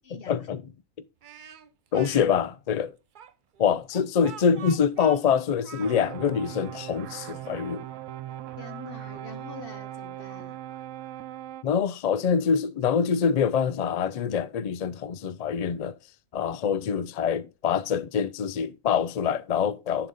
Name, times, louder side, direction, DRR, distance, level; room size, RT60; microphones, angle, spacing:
voice 1, 0.1-0.6 1.9-2.9 3.6-7.9 11.6-16.0 16.3-20.1, left 7 dB, 75° left, 0.3 m, -25 dB
Speech, 1.2-2.3 3.1-6.2, right 8 dB, 50° right, 0.6 m, -45 dB
sound 1, 5.8-11.6, right 12 dB, 75° right, 0.9 m, -39 dB
voice 2, 8.6-10.6, left 4 dB, 45° left, 1.3 m, -44 dB
10.5 x 3.9 x 5.2 m
omnidirectional pair, 1.4 m